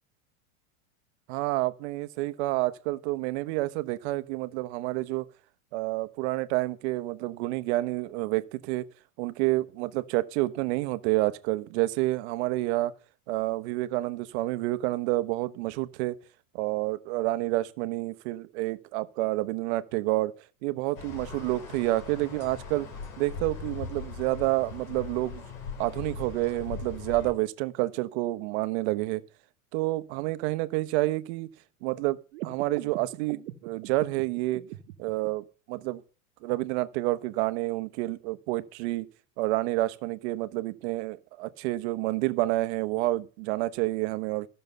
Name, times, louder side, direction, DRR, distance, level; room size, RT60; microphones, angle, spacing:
voice 1, 1.3-5.3 5.7-8.9 9.2-12.9 13.3-16.2 16.5-20.3 20.6-22.9 23.2-25.4 25.8-29.2 29.7-31.5 31.8-34.6 35.0-36.0 36.4-39.1 39.4-44.5, right 18 dB, 50° right, 1.0 m, -29 dB
sound 1, 21.0-27.3, left 5 dB, 75° left, 3.5 m, -40 dB
sound 2, 32.3-35.3, right 14 dB, 65° right, 1.2 m, -41 dB
14.5 x 6.6 x 6.7 m
supercardioid pair, 155°, 42 cm